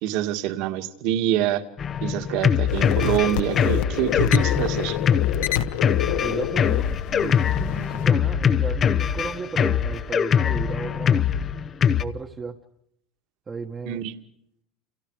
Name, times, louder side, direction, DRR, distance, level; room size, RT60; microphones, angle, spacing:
voice 1, 0.0-1.6 2.0-5.0 13.9-14.1, right 12 dB, 50° right, 7 dB, 2.3 m, -25 dB
Drum kit, 1.8-12.0, left 8 dB, 25° left, 0.9 m, -22 dB
sound 1, 2.7-8.1, left 11 dB, 60° left, 1.4 m, -28 dB
voice 2, 6.0-6.9 7.2-11.3 12.0-12.6 13.5-14.0, right 4 dB, 15° right, 1 dB, 1.4 m, -34 dB
30.0 x 29.0 x 5.0 m, 0.74 s
cardioid pair, 175°, 0 cm